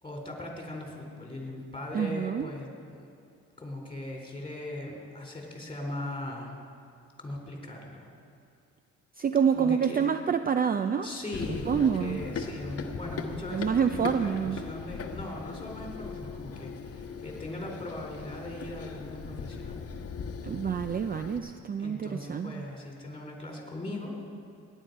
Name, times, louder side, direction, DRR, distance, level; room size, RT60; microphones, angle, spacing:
voice 1, 0.0-3.1 3.6-6.6 7.2-8.1 9.5-10.0 11.0-19.8 21.8-24.1, left 1 dB, 15° left, 0 dB, 3.8 m, -39 dB
voice 2, 1.9-2.5 9.2-11.1 11.7-12.2 13.5-14.6 20.4-22.6, right 7 dB, 30° right, 9 dB, 0.5 m, -27 dB
Run, 11.3-21.4, left 5 dB, 50° left, 1.1 m, -39 dB
18.0 x 9.9 x 5.4 m, 2.5 s
cardioid pair, 90°, 30 cm